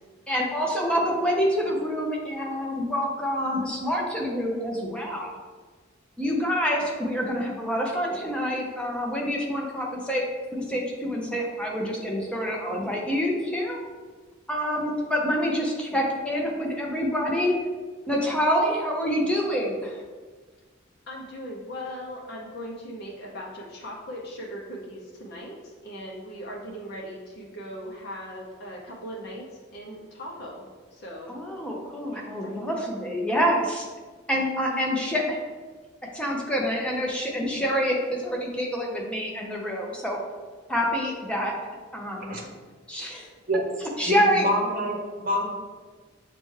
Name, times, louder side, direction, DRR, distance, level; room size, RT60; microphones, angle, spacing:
voice 1, 0.3-5.3 6.2-10.2 10.5-13.8 14.5-17.6 18.1-20.0 31.3-33.9 34.3-35.2 36.1-40.2 40.7-41.5 41.9-42.3 42.9-43.3 43.8-44.5, equal, 5° left, -2 dB, 0.6 m, -27 dB
voice 2, 21.1-30.7 30.9-31.3 32.1-32.9 34.6-35.3, equal, 55° left, -3 dB, 0.6 m, -39 dB
voice 3, 44.1-45.4, equal, 45° right, -1 dB, 0.8 m, -26 dB
6.6 x 2.2 x 3.1 m, 1.4 s
head